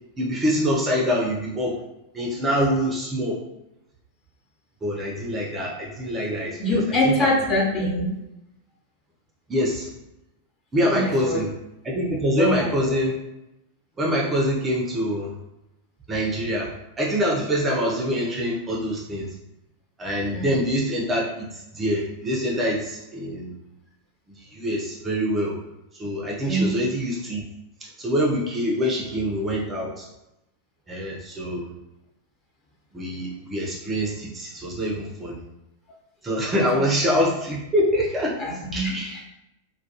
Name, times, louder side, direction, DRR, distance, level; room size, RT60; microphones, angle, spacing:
voice 1, 0.2-1.8 2.1-3.4 4.8-7.3 9.5-9.9 10.7-11.6 11.8-13.2 14.0-15.3 16.1-19.3 20.0-23.6 24.4-25.6 26.0-27.4 27.8-30.1 30.9-31.7 32.9-35.4 36.2-39.1, equal, 20° right, -3 dB, 0.5 m, -25 dB
voice 2, 6.6-8.2 10.8-11.4 12.4-12.9 20.3-20.5 26.4-26.8 36.7-36.9 38.4-39.2, left 1 dB, 30° left, -3 dB, 0.8 m, -24 dB
2.2 x 2.1 x 2.8 m, 0.89 s
figure-of-eight pair, 90°, 0 cm